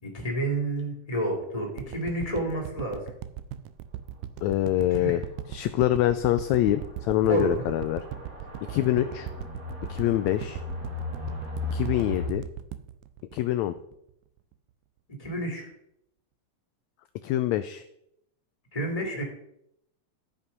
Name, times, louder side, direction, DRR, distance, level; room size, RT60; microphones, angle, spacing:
voice 1, 0.0-3.1 4.9-5.2 7.3-7.5 8.7-9.0 15.2-15.7 18.7-19.2, right 1 dB, 10° left, 0 dB, 2.3 m, -30 dB
sound 1, 1.8-14.1 14.5-14.6, right 12 dB, 85° right, 2.1 m, -38 dB
sound 2, 4.1-4.2 4.5-4.6 5.1-5.2 6.1-12.3, left 2 dB, 30° right, 2.0 m, -37 dB
voice 2, 4.4-5.2 5.5-8.0 8.7-9.3 9.9-10.6 11.7-12.4 13.3-13.7 17.2-17.8, left 14 dB, 85° left, 11 dB, 1.6 m, -25 dB
13.0 x 5.6 x 5.3 m, 0.77 s
omnidirectional pair, 3.7 m